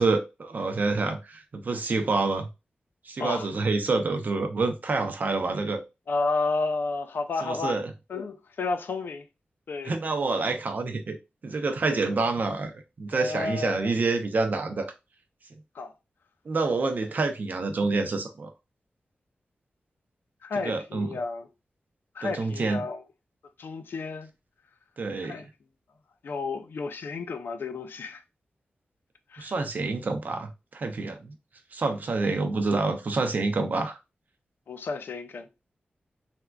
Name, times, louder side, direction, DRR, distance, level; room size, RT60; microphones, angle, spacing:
voice 1, 0.0-2.5 3.1-5.8 7.4-7.9 9.8-11.2 11.4-12.7 13.0-14.9 16.5-18.5 20.6-21.2 22.2-22.8 25.0-25.4 29.4-31.3 31.7-34.0, right 3 dB, 55° right, 0.5 m, -27 dB
voice 2, 6.1-7.8 8.1-9.2 9.7-9.9 11.9-12.0 13.1-13.9 15.8-15.9 20.4-21.5 22.1-23.0 23.6-24.3 25.2-25.5 26.2-28.2 29.3-29.5 34.7-35.5, left 3 dB, 80° left, 0.4 m, -31 dB
3.5 x 2.3 x 2.2 m
wide cardioid pair, 135°, 4 cm